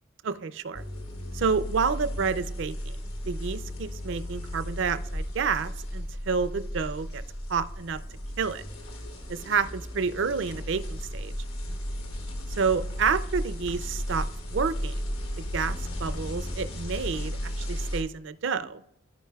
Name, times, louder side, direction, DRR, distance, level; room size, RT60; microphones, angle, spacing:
voice 1, 0.2-0.8 1.3-3.0 3.3-7.2 7.5-8.0 8.4-8.6 9.3-11.3 12.6-15.2 15.5-18.8, right 5 dB, 65° right, 14 dB, 0.4 m, -29 dB
sound 1, 0.7-18.0, equal, 80° left, 1.5 m, -35 dB
13.5 x 5.0 x 2.3 m, 0.82 s
head